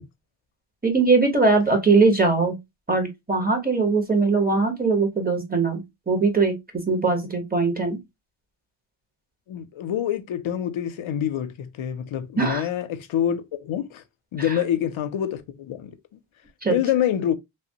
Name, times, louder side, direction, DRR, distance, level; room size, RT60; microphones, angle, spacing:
voice 1, 0.8-2.6 2.9-5.8 6.1-8.0 12.4-12.6 16.6-16.8, right 4 dB, 20° right, 0.9 m, -21 dB
voice 2, 9.5-14.0 14.3-16.2 16.7-17.3, left 10 dB, 75° left, 0.5 m, -26 dB
3.2 x 2.1 x 2.7 m
wide cardioid pair, 75°, 49 cm